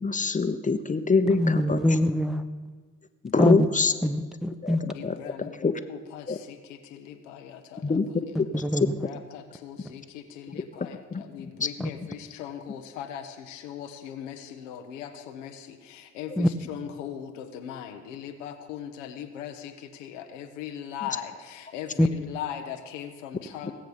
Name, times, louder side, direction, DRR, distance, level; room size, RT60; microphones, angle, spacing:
voice 1, 0.0-1.8 3.2-3.9 4.6-5.7 6.3-6.4 7.8-8.0 8.5-8.9 10.5-10.6 11.1-11.2 11.6-11.9, left 4 dB, 20° left, 10 dB, 1.0 m, -25 dB
voice 2, 1.3-2.4 3.4-3.6 4.0-4.8 8.6-8.9 11.8-11.9 16.4-16.5 22.0-22.1, left 1 dB, ahead, 7 dB, 1.0 m, -23 dB
voice 3, 4.9-8.2 9.0-23.7, left 9 dB, 85° left, 5 dB, 1.1 m, -39 dB
17.5 x 7.7 x 7.1 m, 1.4 s
hypercardioid pair, 45°, 37 cm